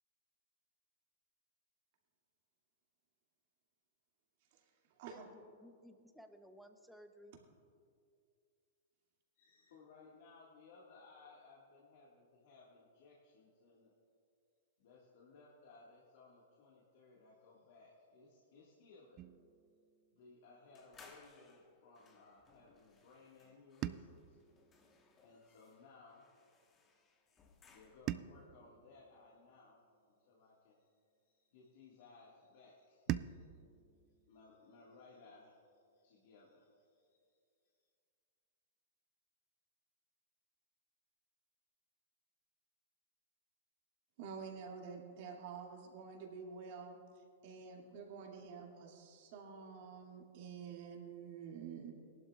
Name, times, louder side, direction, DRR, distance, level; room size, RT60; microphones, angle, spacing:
voice 1, 4.5-5.3 44.2-51.9, right 6 dB, 55° right, 0 dB, 2.3 m, -49 dB
voice 2, 5.0-7.4, equal, ahead, 7 dB, 0.8 m, -59 dB
voice 3, 9.3-13.9 14.8-19.2 20.1-24.4 25.2-26.3 27.7-30.9 31.2-33.5 34.3-37.9, left 3 dB, 65° left, -5 dB, 1.8 m, -62 dB
sound 1, 19.2-21.4 23.8-26.2 28.1-30.6 33.1-35.6, right 13 dB, 35° right, 0.3 m, -47 dB
sound 2, 20.8-28.3, left 4 dB, 25° left, 1.3 m, -65 dB
18.5 x 11.5 x 2.4 m, 2.4 s
hypercardioid pair, 125°, 0 cm